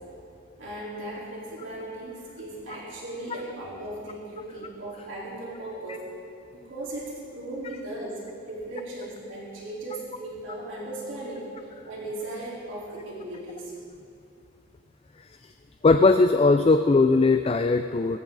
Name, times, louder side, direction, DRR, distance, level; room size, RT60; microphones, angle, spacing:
voice 1, 0.6-6.0 6.5-8.2 8.5-13.7, right 1 dB, 65° right, -7 dB, 4.1 m, -37 dB
voice 2, 15.8-18.2, left 3 dB, 30° left, 8 dB, 0.3 m, -19 dB
19.0 x 15.0 x 4.0 m, 2.6 s
head